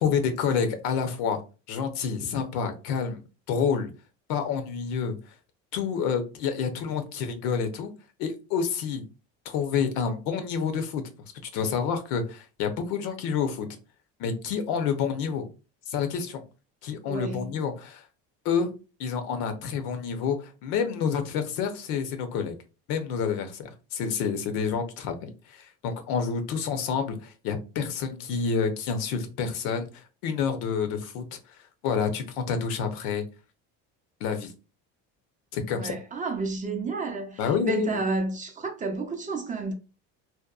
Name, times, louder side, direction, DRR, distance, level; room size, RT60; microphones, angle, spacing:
voice 1, 0.0-1.4 1.7-3.2 3.5-3.9 4.3-5.2 5.7-7.9 8.2-9.0 9.5-11.0 11.3-13.7 14.2-15.5 15.9-16.4 16.8-18.0 18.4-18.7 19.0-22.5 22.9-31.4 31.8-33.2 34.2-34.5 35.5-35.9 37.4-38.0, left 6 dB, 85° left, 0.7 m, -28 dB
voice 2, 17.1-17.5 35.7-39.7, right 3 dB, 25° right, 0.5 m, -31 dB
2.7 x 2.1 x 2.3 m
cardioid pair, 120°, 34 cm